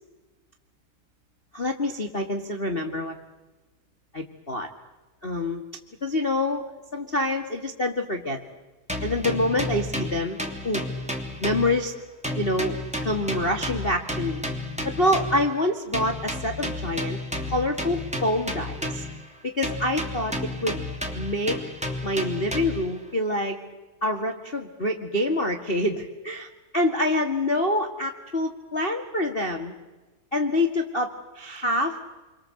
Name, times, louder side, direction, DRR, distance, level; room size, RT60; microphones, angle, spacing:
voice 1, 1.5-3.1 4.1-4.7 5.2-5.6 6.0-8.4 9.0-10.8 11.4-11.9 12.3-12.8 13.0-14.4 14.8-17.2 17.5-19.0 19.4-20.8 21.1-21.6 22.0-23.6 24.0-26.5 26.7-29.7 30.3-32.0, left 1 dB, 25° left, 4 dB, 1.2 m, -26 dB
sound 1, 8.9-12.0 12.2-15.5 15.9-19.3 19.6-22.9, left 1 dB, ahead, 2.5 m, -32 dB
29.5 x 24.5 x 7.9 m, 1.2 s
omnidirectional pair, 4.3 m